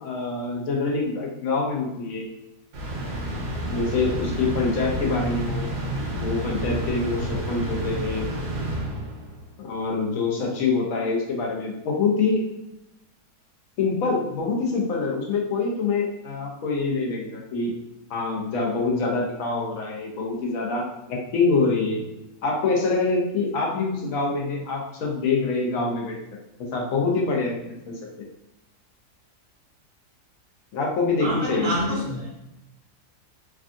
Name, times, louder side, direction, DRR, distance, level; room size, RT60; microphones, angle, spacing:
voice 1, 0.0-2.3 3.7-5.8 6.1-8.3 9.6-12.5 13.8-17.7 18.1-22.0 22.4-26.1 26.6-27.6 30.7-32.0, left 4 dB, 65° left, -1 dB, 1.0 m, -25 dB
sound 1, 2.7-9.4, equal, 80° right, 1.3 m, -29 dB
voice 2, 31.2-32.5, right 1 dB, 60° right, -4 dB, 0.5 m, -28 dB
3.4 x 2.3 x 2.5 m, 0.92 s
omnidirectional pair, 1.7 m